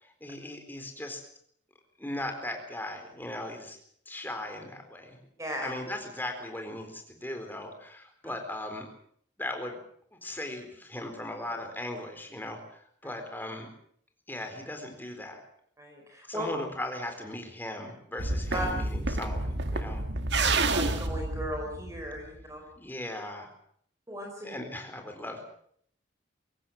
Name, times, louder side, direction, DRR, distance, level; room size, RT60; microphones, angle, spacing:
voice 1, 0.0-1.2 2.0-3.8 4.1-5.2 5.6-8.8 9.4-9.8 10.2-13.7 14.3-15.4 16.3-20.0 22.8-23.5 24.4-25.4, left 1 dB, 10° left, 4 dB, 4.2 m, -38 dB
voice 2, 5.4-5.7 8.2-8.4 13.0-13.2 15.8-16.5 18.5-18.7 20.4-22.6 24.1-24.5, equal, 15° right, 2 dB, 4.7 m, -37 dB
sound 1, 18.2-22.4, right 2 dB, 60° right, 1.9 m, -29 dB
23.0 x 18.0 x 7.7 m, 0.65 s
head